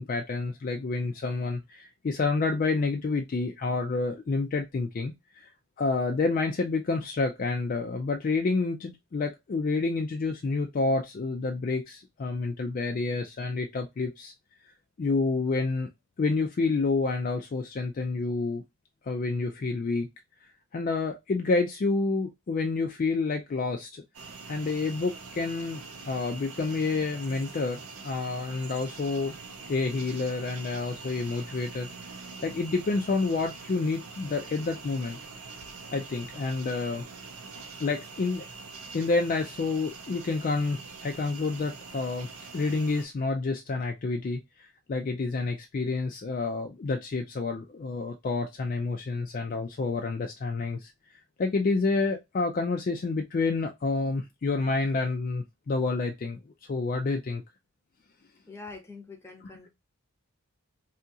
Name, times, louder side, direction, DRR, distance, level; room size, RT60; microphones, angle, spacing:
voice 1, 0.0-5.5 5.8-14.3 15.0-15.9 16.2-18.6 19.0-20.1 20.7-24.0 24.5-25.8 26.1-29.4 29.7-31.9 32.4-35.2 35.9-37.1 37.8-38.5 38.9-50.9 51.4-56.4 56.7-57.4, left 3 dB, 40° left, 0.3 m, -29 dB
sound 1, 24.1-43.1, right 4 dB, 75° right, 0.6 m, -44 dB
voice 2, 58.5-59.7, left 3 dB, 10° left, 0.7 m, -44 dB
2.7 x 2.4 x 2.6 m
head